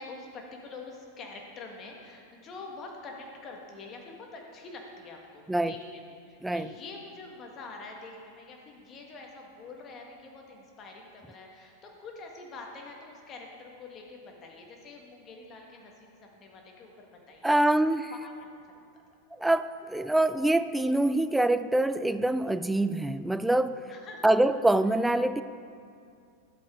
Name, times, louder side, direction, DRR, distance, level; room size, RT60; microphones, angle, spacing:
voice 1, 0.0-17.5 18.1-18.5 18.9-19.0 23.9-24.2, left 3 dB, 35° left, 1 dB, 1.7 m, -46 dB
voice 2, 17.4-18.1 19.3-23.8 24.2-25.4, right 1 dB, 5° right, 12 dB, 0.3 m, -25 dB
11.5 x 7.8 x 3.8 m, 2.3 s
hypercardioid pair, 95°, 0 cm